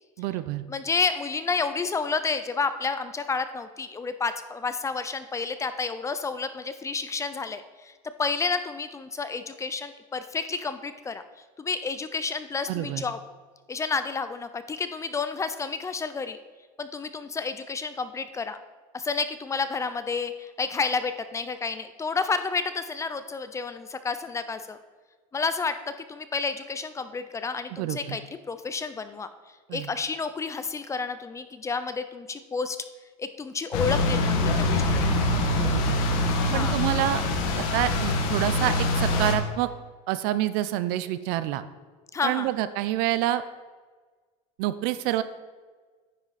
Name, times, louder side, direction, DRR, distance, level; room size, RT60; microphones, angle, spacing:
voice 1, 0.2-0.6 12.7-13.0 27.7-28.2 29.7-29.9 35.5-36.0 36.5-37.2 37.7-39.7 40.1-41.6 42.2-43.4 44.6-45.2, right 14 dB, 65° right, 14 dB, 0.6 m, -27 dB
voice 2, 0.7-7.9 8.2-11.2 11.6-13.2 13.7-16.4 16.8-18.6 18.9-24.8 25.3-28.2 28.5-29.3 29.7-32.8 33.2-35.1 36.5-36.8 42.1-42.5, left 4 dB, 15° left, 11 dB, 0.5 m, -30 dB
sound 1, 33.7-39.3, left 2 dB, 75° left, 1.7 m, -24 dB
9.9 x 8.9 x 4.1 m, 1.4 s
supercardioid pair, 135°, 18 cm